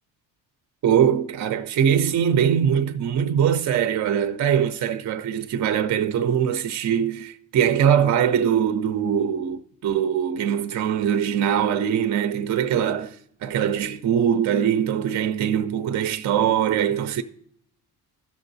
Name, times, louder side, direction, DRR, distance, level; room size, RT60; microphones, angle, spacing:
voice 1, 0.8-13.2 13.4-17.2, right 9 dB, 40° right, 0.4 m, -22 dB
13.5 x 5.9 x 2.7 m
supercardioid pair, 70°, 44 cm